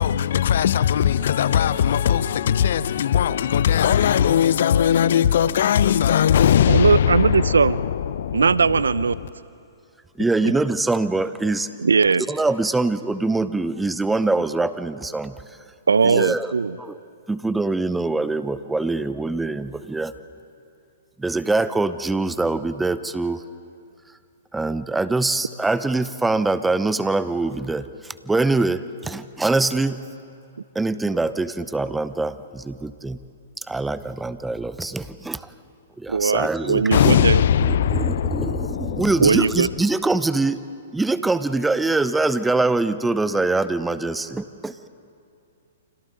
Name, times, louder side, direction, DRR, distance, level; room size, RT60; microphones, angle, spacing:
voice 1, 0.0-9.3 36.9-39.4, left 9 dB, 60° left, 0.6 m, -20 dB
voice 2, 6.7-7.8 8.3-9.1 11.8-12.2 15.9-16.8 36.1-37.4 39.2-39.7, right 5 dB, 80° right, 0.5 m, -19 dB
voice 3, 10.2-11.7 12.3-15.6 16.0-16.5 16.8-17.0 17.3-20.1 21.2-23.4 24.5-30.0 30.7-33.2 33.6-35.5 36.0-37.2 37.7-40.6 40.9-44.9, right 3 dB, 5° right, 0.8 m, -24 dB
29.5 x 26.0 x 4.0 m
figure-of-eight pair, 115°, 0 cm